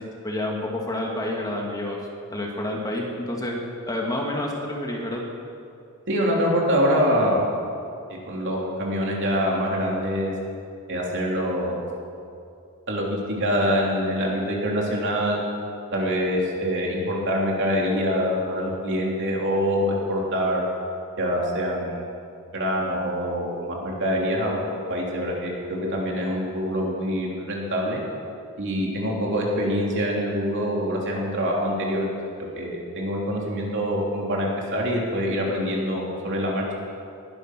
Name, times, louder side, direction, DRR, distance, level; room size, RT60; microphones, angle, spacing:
voice 1, 0.0-2.0 2.3-3.6 3.9-5.2, left 1 dB, 15° left, -1 dB, 2.1 m, -29 dB
voice 2, 6.1-7.5 8.1-10.3 10.9-11.9 12.9-15.4 15.9-20.6 21.2-22.0 22.5-24.6 24.9-28.0 28.6-32.1 32.4-36.6, equal, 55° right, -2 dB, 3.4 m, -25 dB
20.0 x 11.0 x 6.2 m, 2.5 s
head